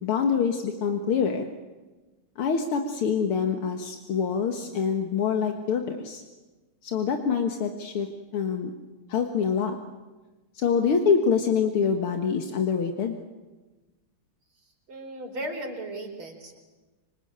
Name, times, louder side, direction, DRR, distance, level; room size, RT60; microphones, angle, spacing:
voice 1, 0.0-1.5 2.4-6.2 6.8-8.1 8.3-8.7 9.1-9.8 10.6-13.2, left 6 dB, 80° left, 5 dB, 2.4 m, -25 dB
voice 2, 14.9-16.6, right 1 dB, 70° right, 2 dB, 5.2 m, -36 dB
26.0 x 25.0 x 8.9 m, 1.2 s
omnidirectional pair, 2.4 m